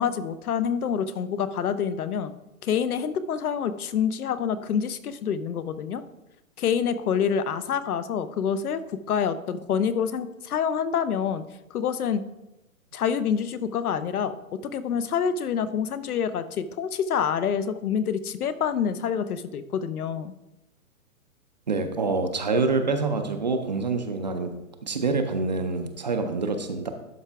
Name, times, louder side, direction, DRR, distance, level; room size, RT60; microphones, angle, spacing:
voice 1, 0.0-2.3 2.6-6.0 6.6-11.4 11.7-12.2 12.9-14.4 14.6-20.3, left 7 dB, 80° left, 13 dB, 0.8 m, -27 dB
voice 2, 21.7-24.5 24.8-26.9, right 3 dB, 30° right, 6 dB, 0.4 m, -26 dB
11.5 x 4.8 x 3.4 m, 0.93 s
hypercardioid pair, 160°, 44 cm